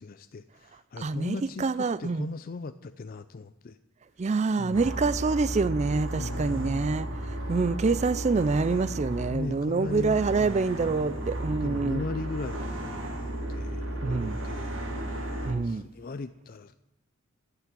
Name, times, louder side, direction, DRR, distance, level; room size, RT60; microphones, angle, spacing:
voice 1, 0.0-3.8 4.6-4.8 6.2-7.0 9.3-10.7 11.6-13.0 13.5-14.7 15.6-16.8, left 3 dB, 40° left, 0.4 m, -38 dB
voice 2, 1.0-2.3 4.2-7.1 7.5-12.0 14.0-14.4 15.4-15.8, right 4 dB, 30° right, 0.3 m, -26 dB
sound 1, 4.7-15.5, right 1 dB, 60° right, 2.5 m, -34 dB
14.5 x 6.9 x 8.3 m
head